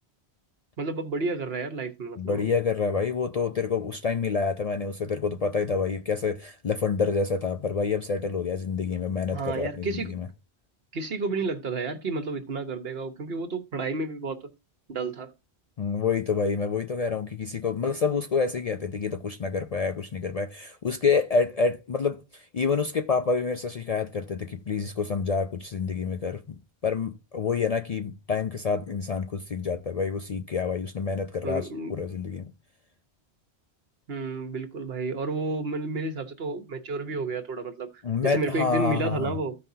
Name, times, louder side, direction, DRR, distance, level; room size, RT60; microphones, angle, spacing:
voice 1, 0.8-2.4 9.3-10.1 10.9-14.5 14.9-15.3 31.4-31.9 34.1-37.9 38.2-39.6, right 3 dB, 65° right, 1.3 m, -31 dB
voice 2, 2.2-10.3 15.8-32.5 38.0-39.3, left 5 dB, 50° left, 0.5 m, -28 dB
14.5 x 5.5 x 2.7 m
omnidirectional pair, 1.1 m